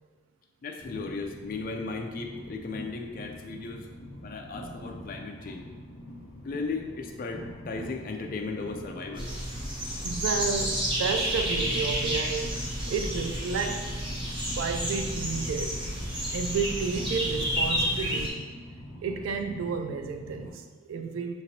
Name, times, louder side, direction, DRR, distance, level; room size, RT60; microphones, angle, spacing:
voice 1, 0.6-3.9 4.2-5.6 6.4-9.3, left 3 dB, 45° left, 2 dB, 0.3 m, -36 dB
Train, 0.8-20.5, left 1 dB, 70° left, 0.8 m, -44 dB
sound 1, 9.1-18.3, equal, 25° right, 0.8 m, -30 dB
voice 2, 10.0-12.6 12.9-13.9 14.6-15.8 16.3-18.5 19.0-21.4, right 5 dB, 80° right, 6 dB, 0.3 m, -31 dB
5.8 x 2.9 x 2.7 m, 1.4 s
head